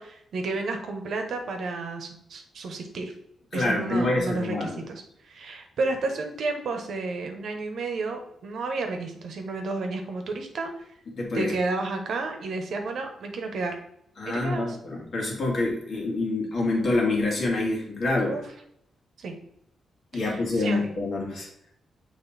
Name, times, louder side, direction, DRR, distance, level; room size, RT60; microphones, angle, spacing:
voice 1, 0.0-3.1 3.5-10.9 11.3-13.8 14.3-14.8 18.2-18.4 19.2-19.3 20.1-20.9, right 3 dB, 65° right, 4 dB, 1.0 m, -31 dB
voice 2, 3.5-4.8 11.2-11.5 14.2-18.3 20.1-21.5, left 2 dB, 50° left, -1 dB, 1.8 m, -26 dB
7.2 x 3.2 x 4.1 m, 0.73 s
wide cardioid pair, 140°, 0 cm